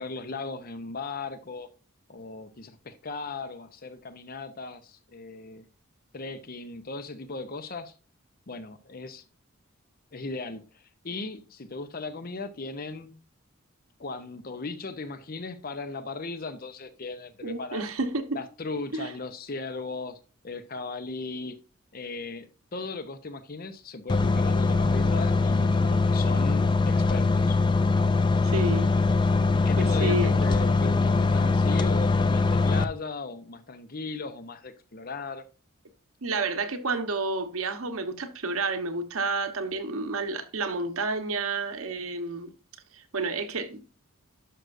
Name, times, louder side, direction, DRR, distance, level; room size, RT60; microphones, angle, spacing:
voice 1, 0.0-1.7 2.1-5.7 6.1-7.9 8.5-9.2 10.1-13.2 14.0-17.8 18.3-20.2 20.4-21.6 21.9-27.6 29.6-35.4, left 3 dB, 45° left, 0.7 m, -37 dB
voice 2, 17.4-18.4 18.9-19.1 25.7-26.0 28.4-28.9 29.8-30.3 36.2-42.5 42.9-43.8, right 3 dB, 85° right, 1.1 m, -30 dB
sound 1, 24.1-32.8, left 3 dB, 20° left, 0.4 m, -22 dB
11.0 x 6.4 x 2.6 m
head